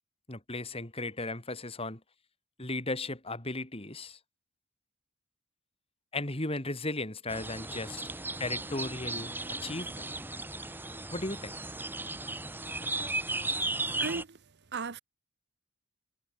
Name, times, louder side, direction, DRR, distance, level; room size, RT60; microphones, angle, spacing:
voice 1, 0.3-2.0 2.6-4.2 6.1-8.0 8.4-9.3 9.6-10.0 11.1-11.6, left 2 dB, 25° left, 3.3 m, -36 dB
sound 1, 7.3-14.2, right 2 dB, 10° right, 3.0 m, -36 dB
voice 2, 14.0-14.4 14.7-15.0, right 4 dB, 50° right, 0.9 m, -35 dB
head